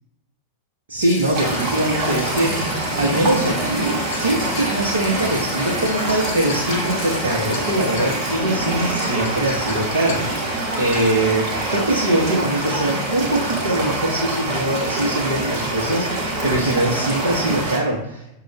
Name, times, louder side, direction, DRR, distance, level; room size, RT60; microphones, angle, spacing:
voice 1, 0.9-18.3, right 1 dB, 65° right, -4 dB, 0.8 m, -22 dB
sound 1, 1.0-8.4, left 2 dB, 30° left, 1.1 m, -35 dB
sound 2, 1.2-11.1, left 5 dB, 60° left, 0.4 m, -37 dB
sound 3, 1.3-17.8, right 2 dB, 35° right, 1.3 m, -25 dB
6.3 x 2.4 x 3.0 m, 0.89 s
figure-of-eight pair, 90°, 0 cm